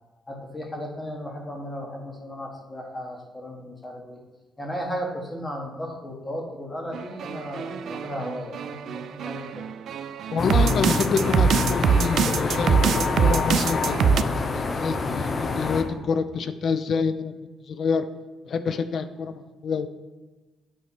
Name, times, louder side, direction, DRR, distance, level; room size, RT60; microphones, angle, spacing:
voice 1, 0.3-4.2 4.6-9.6, equal, 20° left, 0 dB, 1.5 m, -35 dB
sound 1, 6.9-14.2, right 6 dB, 65° right, 0.3 m, -24 dB
voice 2, 10.3-17.3 17.7-18.1 18.4-19.9, left 5 dB, 55° left, 10 dB, 0.4 m, -27 dB
sound 2, 10.4-15.8, left 4 dB, 40° left, 0.8 m, -26 dB
8.6 x 3.1 x 5.9 m, 1.2 s
cardioid pair, 90°, 0 cm